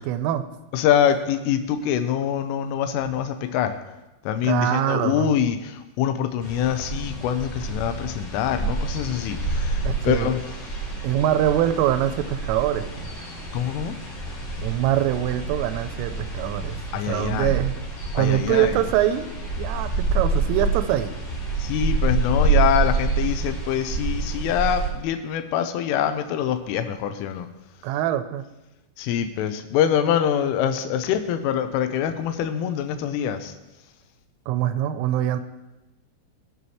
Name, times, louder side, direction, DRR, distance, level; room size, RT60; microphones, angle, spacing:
voice 1, 0.1-0.5 4.4-5.3 9.8-10.3 11.0-13.1 14.6-16.8 17.1-17.8 18.1-19.3 19.6-21.1 27.8-28.4 34.5-35.4, right 12 dB, 85° right, 10 dB, 3.2 m, -23 dB
voice 2, 0.7-3.8 4.3-10.4 13.5-13.9 16.9-17.6 18.2-18.9 21.6-27.5 29.0-33.5, left 9 dB, 85° left, 7 dB, 3.2 m, -24 dB
sound 1, 6.4-24.9, right 3 dB, 45° left, 3.2 m, -27 dB
20.0 x 6.9 x 3.1 m, 1.0 s
omnidirectional pair, 5.8 m